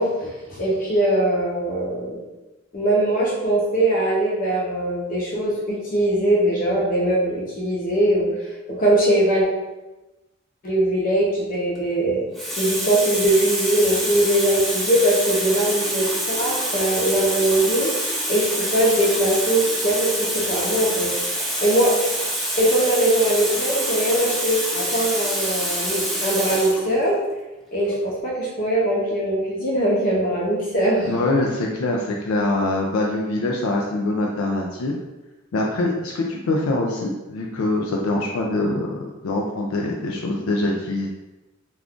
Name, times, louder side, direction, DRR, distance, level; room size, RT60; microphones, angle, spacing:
voice 1, 0.0-2.2 2.7-8.3 8.7-9.5 10.6-12.3 12.6-17.9 18.3-21.1 21.6-21.9 22.6-27.2 27.7-31.1, right 1 dB, 45° left, -4 dB, 0.8 m, -21 dB
Water tap faucet, 11.5-11.8 12.3-26.8 27.7-27.9, equal, ahead, 0.5 m, -26 dB
voice 2, 31.0-35.0 35.5-41.1, left 2 dB, 75° left, 0 dB, 0.4 m, -24 dB
2.4 x 2.3 x 3.5 m, 1.1 s
head